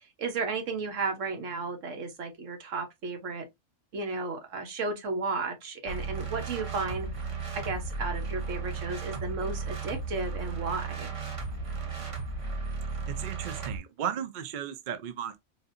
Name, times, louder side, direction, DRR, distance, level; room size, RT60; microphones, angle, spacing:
voice 1, 0.2-3.5 3.9-7.1 7.5-11.2, right 4 dB, 75° right, 1.3 m, -33 dB
sound 1, 5.9-13.8, right 4 dB, 30° right, 0.8 m, -35 dB
voice 2, 13.2-15.4, right 9 dB, 55° right, 0.5 m, -35 dB
4.0 x 2.6 x 2.5 m
omnidirectional pair, 1.3 m